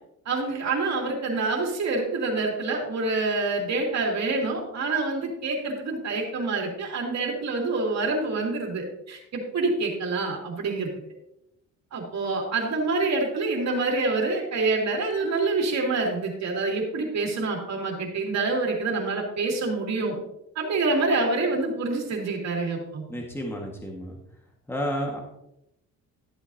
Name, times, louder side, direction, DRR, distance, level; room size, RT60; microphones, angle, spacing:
voice 1, 0.2-10.9 11.9-20.2 20.5-23.0, right 3 dB, 60° right, 0 dB, 2.9 m, -26 dB
voice 2, 23.1-24.2 24.7-25.2, equal, 10° left, 0 dB, 1.6 m, -31 dB
13.5 x 8.1 x 2.8 m, 0.83 s
cardioid pair, 90°, 30 cm